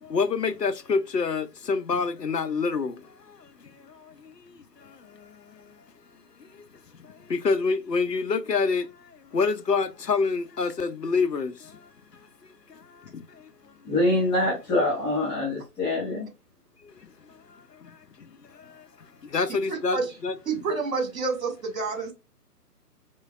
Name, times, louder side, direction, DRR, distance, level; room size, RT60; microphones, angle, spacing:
voice 1, 0.0-5.7 6.4-6.6 7.0-11.9 12.7-13.4 16.8-16.9 17.5-18.0 18.5-18.8 19.2-20.3, left 4 dB, 90° left, 0.7 m, -28 dB
voice 2, 13.8-16.3, left 1 dB, 10° left, 1.3 m, -24 dB
voice 3, 19.7-20.1 20.5-22.1, right 4 dB, 60° right, 1.8 m, -29 dB
4.4 x 3.1 x 2.4 m
figure-of-eight pair, 130°, 47 cm